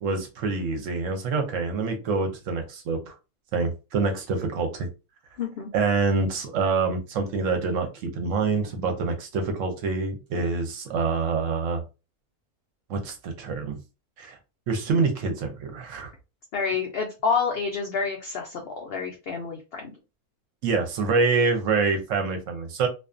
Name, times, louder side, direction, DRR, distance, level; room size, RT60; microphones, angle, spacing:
voice 1, 0.0-3.1 3.5-4.9 5.7-11.8 12.9-13.8 14.2-14.4 14.7-16.1 20.6-22.9, right 4 dB, 70° right, 5 dB, 0.9 m, -26 dB
voice 2, 5.4-5.7 16.5-19.9, left 5 dB, 80° left, 1 dB, 0.5 m, -28 dB
2.5 x 2.2 x 2.4 m, 0.28 s
omnidirectional pair, 1.6 m